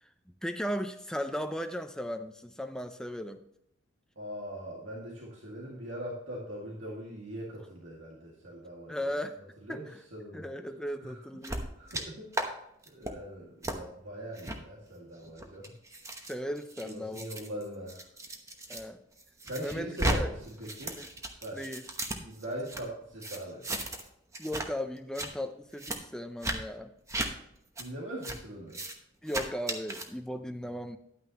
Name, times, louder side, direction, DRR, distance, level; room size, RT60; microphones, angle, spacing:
voice 1, 0.4-3.4 8.9-9.4 9.7-10.0 10.3-11.7 16.3-17.3 18.7-19.0 19.6-20.3 21.0-21.1 21.5-21.8 24.4-26.9 29.2-31.0, equal, 5° left, 7 dB, 0.5 m, -36 dB
voice 2, 4.2-9.1 9.6-10.5 11.0-11.2 11.8-12.6 12.9-15.7 16.8-18.1 19.4-21.0 21.4-21.6 22.2-23.7 27.8-28.8, right 1 dB, 75° right, -3 dB, 2.1 m, -41 dB
sound 1, 11.4-12.0 12.3-12.5 12.8-13.1 13.6-13.8 14.4-14.6 15.2-18.8 19.2-20.2 20.4-22.8 23.2-24.1 24.3-24.7 25.0-25.3 25.8-26.0 26.4-26.6 27.1-27.3 27.8-27.9 28.2-28.4 28.7-28.9 29.3-30.1, right 1 dB, 15° right, 1.0 m, -35 dB
11.0 x 9.2 x 2.9 m, 0.77 s
head